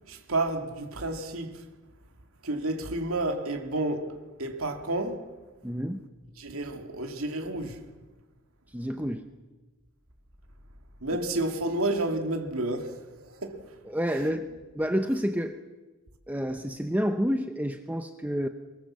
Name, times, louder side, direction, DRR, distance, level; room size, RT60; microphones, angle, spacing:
voice 1, 0.1-1.7 2.4-5.3 6.4-7.8 11.0-13.6, right 2 dB, 70° right, 2.5 m, -30 dB
voice 2, 5.6-6.0 8.7-9.3 13.9-14.5 14.7-15.6 16.3-18.5, equal, 5° right, 0.8 m, -29 dB
23.5 x 21.5 x 7.5 m
head